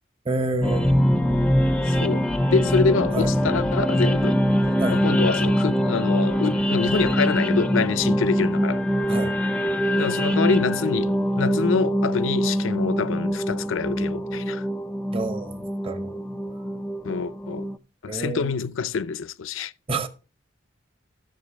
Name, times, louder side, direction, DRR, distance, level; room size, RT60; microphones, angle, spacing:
voice 1, 0.2-1.1 3.1-3.3 4.8-5.0 9.1-9.3 15.1-16.2 18.1-18.6 19.9-20.1, right 2 dB, 30° right, 0.8 m, -28 dB
sound 1, 0.6-17.8, equal, 5° left, 0.4 m, -23 dB
voice 2, 1.9-4.4 4.9-8.8 10.0-14.7 17.0-17.7 18.0-19.7, left 5 dB, 90° left, 0.5 m, -26 dB
14.0 x 6.8 x 3.4 m
head